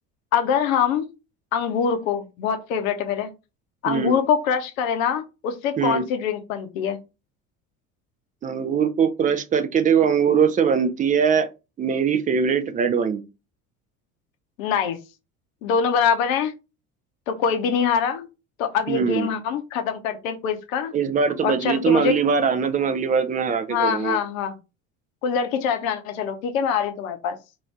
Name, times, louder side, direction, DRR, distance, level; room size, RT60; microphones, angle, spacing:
voice 1, 0.3-1.1 1.5-3.3 3.8-7.0 14.6-15.0 15.6-16.5 17.3-18.3 18.6-20.9 21.4-22.1 23.7-24.5 25.2-27.4, left 7 dB, 65° left, 0.8 m, -24 dB
voice 2, 3.9-4.2 5.8-6.0 8.4-11.5 11.8-13.2 18.9-19.3 20.9-24.2, right 6 dB, 20° right, 0.4 m, -21 dB
2.7 x 2.6 x 3.2 m
figure-of-eight pair, 65°, 43 cm